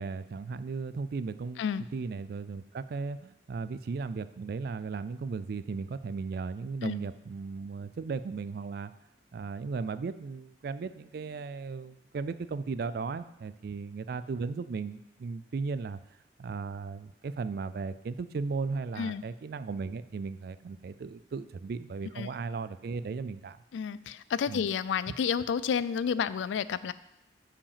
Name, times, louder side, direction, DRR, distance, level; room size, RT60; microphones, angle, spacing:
voice 1, 0.0-1.6 1.9-8.9 9.3-16.0 16.4-23.6 24.5-24.6, right 4 dB, 55° right, 13 dB, 0.3 m, -36 dB
voice 2, 23.7-26.9, left 7 dB, 90° left, 16 dB, 0.3 m, -30 dB
5.7 x 5.0 x 6.6 m, 0.89 s
head